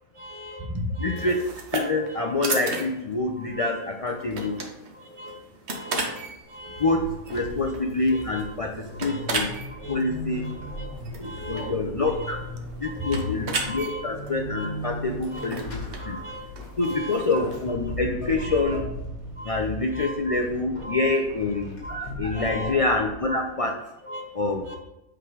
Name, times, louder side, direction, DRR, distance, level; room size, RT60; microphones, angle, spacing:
voice 1, 0.1-1.4 1.8-2.2 2.7-2.8 3.4-3.8 4.4-4.6 4.9-5.4 5.7-6.2 6.5-6.9 7.3-7.4 8.1-8.4 8.9-9.2 9.8-10.0 10.4-11.8 12.0-12.4 12.8-13.3 13.6-14.0 14.5-14.7 15.2-15.5 16.0-16.5 16.7-17.2 18.4-18.7 19.4-19.6 19.9-20.4 20.8-21.2 21.8-22.0 22.3-22.8 23.3-23.4 24.0-24.2 24.6-24.8, equal, 25° right, 2 dB, 0.8 m, -37 dB
voice 2, 1.0-1.4 1.7-4.6 6.8-7.0 7.3-9.5 9.9-10.5 11.2-12.4 12.8-16.2 16.8-18.8 19.4-23.8 24.3-24.6, left 3 dB, 60° left, 2 dB, 0.3 m, -26 dB
sound 1, 1.2-17.7, right 3 dB, 55° right, 1.2 m, -36 dB
Vehicle / Accelerating revving vroom / Squeak, 6.4-23.6, equal, 80° left, 2.4 m, -38 dB
8.0 x 3.7 x 4.7 m, 0.92 s
omnidirectional pair, 1.5 m